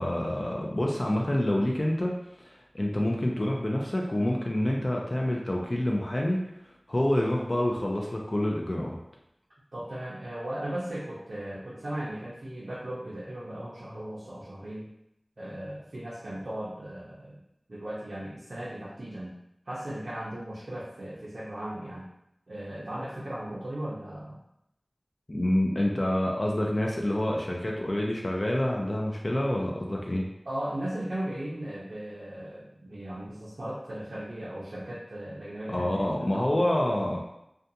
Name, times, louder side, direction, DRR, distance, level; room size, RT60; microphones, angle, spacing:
voice 1, 0.0-2.1 2.5-6.4 6.9-9.0 25.3-30.3 35.7-37.2, left 1 dB, 45° left, -1 dB, 0.4 m, -27 dB
voice 2, 9.7-14.8 15.4-17.4 17.7-19.3 19.7-22.1 22.5-24.4 30.5-36.6, right 1 dB, 85° right, -8 dB, 0.5 m, -37 dB
2.5 x 2.2 x 2.6 m, 0.81 s
wide cardioid pair, 50°, 0 cm